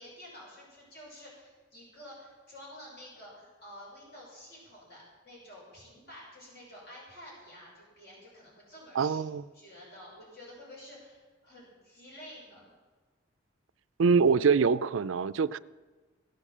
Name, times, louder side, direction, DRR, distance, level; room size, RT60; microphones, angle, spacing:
voice 1, 0.0-9.2 9.5-12.7, left 1 dB, 55° left, -4 dB, 5.7 m, -50 dB
voice 2, 9.0-9.4 14.0-15.6, right 5 dB, 70° right, 15 dB, 0.4 m, -24 dB
16.5 x 8.3 x 7.3 m, 1.3 s
head